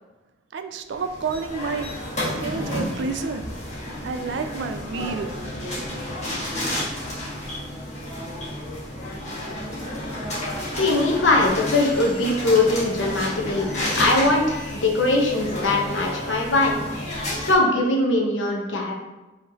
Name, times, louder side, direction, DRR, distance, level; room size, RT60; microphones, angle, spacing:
voice 1, 0.5-1.9 2.4-3.5 4.0-5.3, right 4 dB, 70° right, 8 dB, 0.3 m, -29 dB
sound 1, 0.9-17.5, left 1 dB, 35° left, 1.2 m, -31 dB
voice 2, 10.8-13.7 14.0-16.8 17.4-18.9, left 2 dB, 85° left, -1 dB, 0.8 m, -21 dB
5.0 x 3.0 x 2.7 m, 1.1 s
head